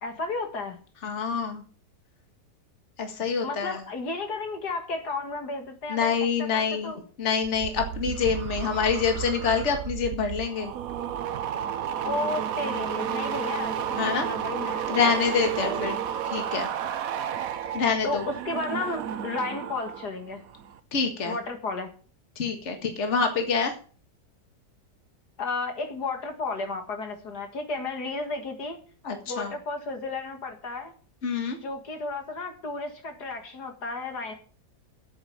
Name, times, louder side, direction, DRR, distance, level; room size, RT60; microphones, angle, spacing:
voice 1, 0.0-0.8 3.4-7.0 12.0-15.9 18.0-20.4 21.2-21.9 25.4-28.8 29.3-30.9 31.6-34.3, left 3 dB, 65° left, 5 dB, 2.4 m, -33 dB
voice 2, 1.0-1.6 3.0-3.8 5.9-6.9 7.2-10.7 14.0-14.3 14.9-16.0 16.3-16.7 17.7-18.2 20.9-21.4 22.4-23.7 29.0-29.5 31.2-31.6, left 5 dB, 45° left, 4 dB, 2.1 m, -26 dB
sound 1, 7.4-20.1 20.4-20.8, right 9 dB, 60° right, 1.1 m, -32 dB
8.8 x 8.0 x 8.8 m, 0.41 s
omnidirectional pair, 1.8 m